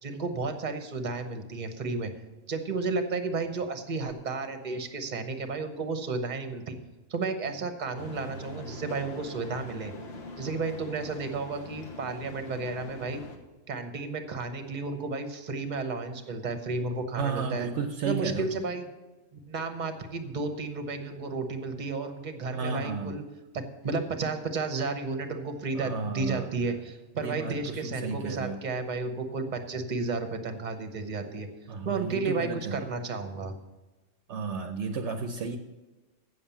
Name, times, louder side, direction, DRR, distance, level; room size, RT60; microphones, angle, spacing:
voice 1, 0.0-2.1 2.5-6.8 7.1-9.9 10.4-13.2 13.7-17.7 18.0-18.8 19.5-23.2 23.5-31.5 31.8-33.5, right 3 dB, 40° right, 7 dB, 1.0 m, -32 dB
sound 1, 8.0-13.4, left 2 dB, 55° left, 1.3 m, -43 dB
voice 2, 17.1-18.5 22.6-23.2 25.8-26.4 27.2-28.6 31.7-32.8 34.3-35.6, right 4 dB, 70° right, 6 dB, 0.9 m, -33 dB
8.2 x 7.3 x 7.1 m, 1.1 s
omnidirectional pair, 1.3 m